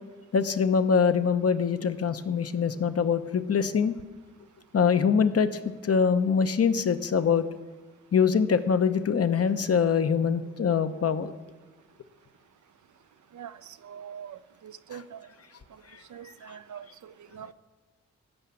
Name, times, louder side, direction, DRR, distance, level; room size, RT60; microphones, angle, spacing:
voice 1, 0.3-3.9 4.7-7.5 8.1-11.3 15.9-16.0, left 6 dB, 50° left, 0.9 m, -24 dB
voice 2, 13.3-15.3 16.1-17.5, right 8 dB, 70° right, 0.7 m, -44 dB
14.0 x 5.8 x 7.4 m
supercardioid pair, 40°, 31 cm